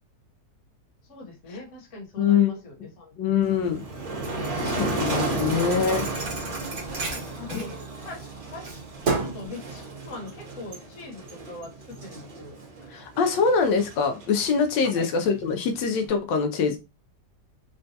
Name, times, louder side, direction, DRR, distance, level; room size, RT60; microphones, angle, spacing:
voice 1, 1.0-3.2 7.0-7.8 8.0-8.8 9.1-12.6 14.8-15.1, left 3 dB, 50° left, 1.3 m, -41 dB
voice 2, 2.2-2.6 3.2-3.8 4.6-6.1 7.5-7.6 12.9-16.8, left 6 dB, 90° left, 1.3 m, -24 dB
Motor vehicle (road), 3.4-16.1, right 2 dB, 70° right, 1.7 m, -34 dB
Thump thud, 4.2-8.3 8.6-9.5, right 3 dB, 45° right, 1.0 m, -32 dB
4.0 x 2.2 x 2.7 m
omnidirectional pair, 1.9 m